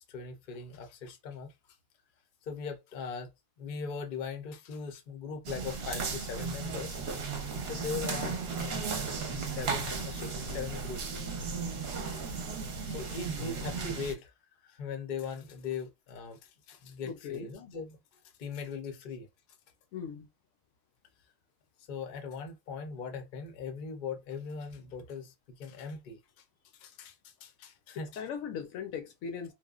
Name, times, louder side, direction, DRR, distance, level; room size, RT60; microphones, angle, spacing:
voice 1, 0.1-1.5 2.4-3.3 3.6-7.0 7.7-9.2 9.5-11.2 12.8-14.3 14.6-18.0 18.4-19.3 21.9-26.4 26.7-28.2, left 5 dB, 50° left, 0.6 m, -40 dB
sound 1, 5.4-14.1, right 4 dB, 55° right, 0.8 m, -35 dB
voice 2, 17.0-17.5 19.9-20.3 28.2-29.5, left 7 dB, 75° left, 1.0 m, -38 dB
3.0 x 2.1 x 2.3 m
omnidirectional pair, 1.4 m